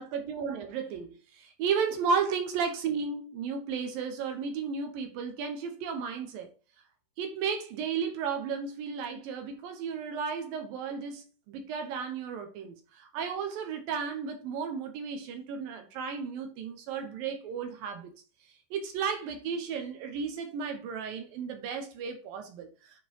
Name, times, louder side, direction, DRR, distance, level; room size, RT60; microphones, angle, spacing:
voice 1, 0.0-6.5 7.2-18.1 18.7-22.7, right 6 dB, 70° right, 2.4 m, -34 dB
9.5 x 4.0 x 4.6 m
omnidirectional pair, 5.1 m